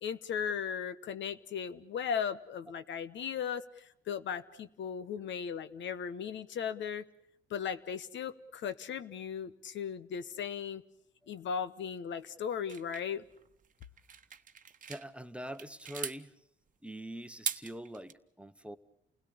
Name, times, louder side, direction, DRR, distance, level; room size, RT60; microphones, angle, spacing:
voice 1, 0.0-7.0 7.5-10.8 11.3-13.2, left 7 dB, 70° left, 1.1 m, -37 dB
sound 1, 12.7-15.1 15.4-16.2 17.2-18.1, right 7 dB, 40° right, 1.1 m, -40 dB
voice 2, 14.9-16.3 16.8-18.8, right 1 dB, 5° right, 1.0 m, -43 dB
29.0 x 17.0 x 8.6 m
cardioid pair, 90°, 20 cm